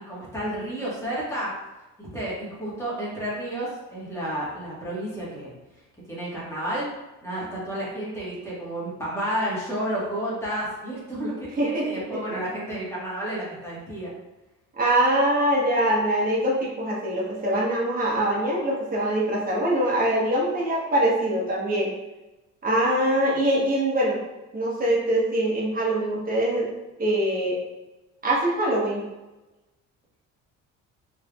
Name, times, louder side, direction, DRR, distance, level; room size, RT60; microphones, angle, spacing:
voice 1, 0.1-1.5 2.0-5.5 6.1-6.8 7.2-14.1, right 1 dB, 10° left, -7 dB, 1.4 m, -31 dB
voice 2, 11.5-12.2 14.8-21.9 22.6-24.2 24.5-26.7 27.0-27.6 28.2-29.1, right 1 dB, 30° right, -5 dB, 1.1 m, -23 dB
4.4 x 3.3 x 2.4 m, 1.0 s
cardioid pair, 140°, 31 cm